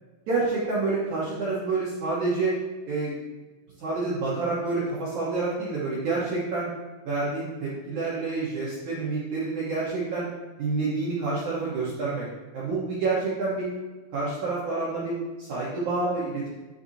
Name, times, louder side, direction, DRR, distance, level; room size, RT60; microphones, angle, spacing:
voice 1, 0.3-2.6 2.9-3.1 3.8-6.7 7.1-10.3 10.6-12.3 12.5-13.7 14.1-16.5, right 3 dB, 65° right, -8 dB, 1.9 m, -28 dB
10.0 x 5.7 x 2.9 m, 1.3 s
omnidirectional pair, 5.6 m